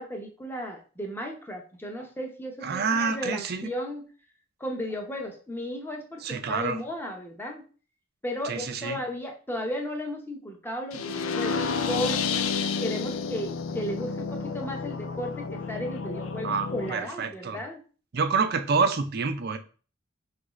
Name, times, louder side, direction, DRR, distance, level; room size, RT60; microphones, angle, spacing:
voice 1, 0.0-4.1 4.6-7.6 8.2-12.4 12.8-17.8, equal, 10° left, 0.7 m, -35 dB
voice 2, 2.6-3.7 6.2-6.8 8.4-9.0 16.4-17.6 18.1-19.6, right 5 dB, 50° right, 0.5 m, -27 dB
sound 1, 10.9-16.9, left 5 dB, 85° left, 0.4 m, -30 dB
5.2 x 2.5 x 3.0 m
head